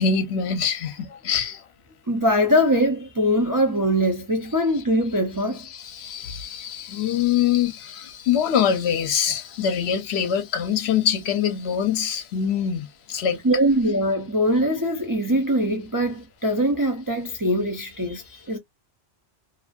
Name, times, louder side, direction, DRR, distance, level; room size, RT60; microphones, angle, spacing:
voice 1, 0.0-1.6 5.6-13.4, left 8 dB, 70° left, 0.9 m, -24 dB
voice 2, 2.1-5.6 13.4-18.6, equal, 30° right, 0.4 m, -22 dB
2.7 x 2.5 x 2.2 m
omnidirectional pair, 1.2 m